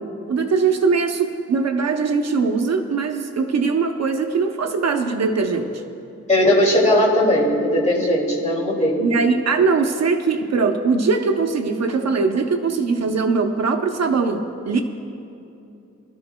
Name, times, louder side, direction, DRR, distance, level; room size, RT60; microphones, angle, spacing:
voice 1, 0.3-5.7 9.0-14.8, right 4 dB, 60° right, 4 dB, 0.7 m, -21 dB
voice 2, 6.3-9.0, left 1 dB, 25° left, -3 dB, 2.4 m, -18 dB
27.5 x 13.0 x 2.2 m, 2.7 s
wide cardioid pair, 180°, 30 cm